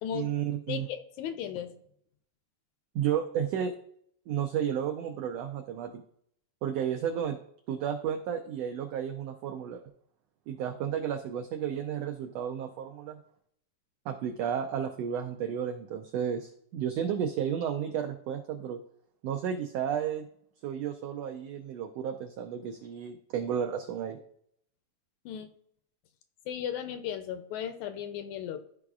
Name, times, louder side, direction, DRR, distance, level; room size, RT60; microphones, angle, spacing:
voice 1, 0.1-0.9 2.9-3.7 4.3-6.0 6.6-7.4 7.7-9.8 10.5-13.2 14.0-18.8 19.2-20.3 20.6-24.2, right 8 dB, 90° right, 5 dB, 1.4 m, -32 dB
voice 2, 0.7-1.7 25.2-25.5 26.5-28.7, left 9 dB, 80° left, 9 dB, 1.8 m, -36 dB
13.0 x 4.8 x 2.4 m, 0.68 s
omnidirectional pair, 3.5 m